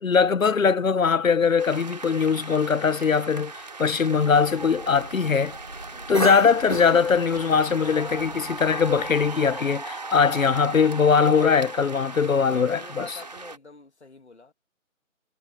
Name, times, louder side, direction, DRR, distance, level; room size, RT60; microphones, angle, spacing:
voice 1, 0.0-5.6 6.1-13.0, left 6 dB, 80° left, 1.0 m, -21 dB
sound 1, 1.6-13.6, right 3 dB, 30° right, 3.2 m, -38 dB
Cough, 4.1-9.5, right 1 dB, 30° left, 0.8 m, -35 dB
voice 2, 11.2-11.6 11.8-14.5, left 3 dB, 55° left, 2.9 m, -46 dB
figure-of-eight pair, 180°, 40 cm